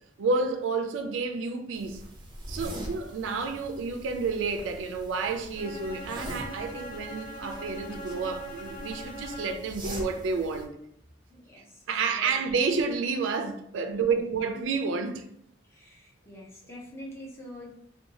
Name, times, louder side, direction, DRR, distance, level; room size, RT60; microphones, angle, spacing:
voice 1, 0.2-2.0 2.5-10.7 11.9-15.2, right 4 dB, 85° right, 0.4 m, -30 dB
sound 1, 1.7-10.6, right 1 dB, 25° right, 0.5 m, -43 dB
voice 2, 2.5-2.8 11.3-11.8 12.2-12.4 13.9-14.2 15.6-17.7, equal, 15° left, 0.7 m, -46 dB
Bowed string instrument, 5.5-9.8, equal, 50° left, 0.9 m, -41 dB
2.6 x 2.2 x 2.8 m
head